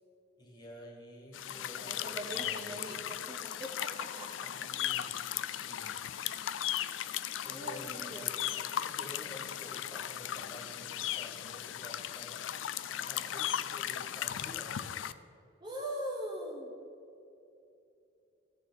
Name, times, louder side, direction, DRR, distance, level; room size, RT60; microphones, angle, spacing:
voice 1, 0.4-3.0 4.4-6.0 7.4-8.5 8.8-12.4 12.9-15.1, equal, 20° left, 0 dB, 1.8 m, -51 dB
sound 1, 1.3-15.1, left 11 dB, 85° left, 0.4 m, -37 dB
voice 2, 1.8-4.7 7.5-8.4 15.6-16.7, right 1 dB, 25° right, -1 dB, 1.1 m, -42 dB
15.5 x 6.7 x 4.1 m, 2.7 s
head